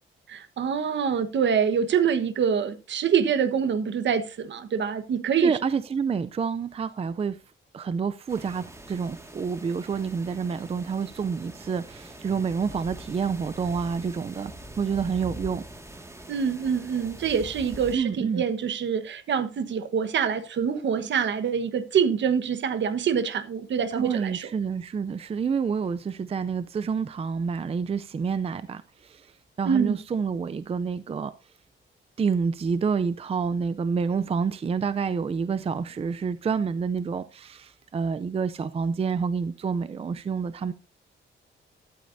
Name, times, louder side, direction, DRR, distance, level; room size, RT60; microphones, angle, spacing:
voice 1, 0.3-5.6 16.3-24.5 29.6-30.0, right 7 dB, 65° right, 1.3 m, -25 dB
voice 2, 5.4-7.4 7.7-14.5 14.8-15.6 17.9-18.4 23.9-29.3 29.6-31.3 32.2-40.7, right 5 dB, 30° right, 0.5 m, -28 dB
sound 1, 8.3-18.0, right 1 dB, 15° right, 1.9 m, -43 dB
14.0 x 12.0 x 2.7 m
wide cardioid pair, 135°, 20 cm